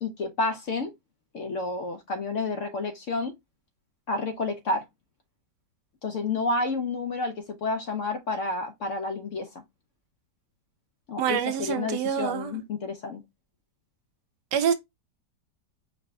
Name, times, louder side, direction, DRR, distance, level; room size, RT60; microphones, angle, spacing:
voice 1, 0.0-0.9 1.3-3.3 4.1-4.8 6.0-9.5 11.1-13.2, left 3 dB, 60° left, 0.8 m, -30 dB
voice 2, 11.2-12.6 14.5-14.7, right 8 dB, 80° right, 1.3 m, -26 dB
4.9 x 2.2 x 3.4 m
omnidirectional pair, 1.8 m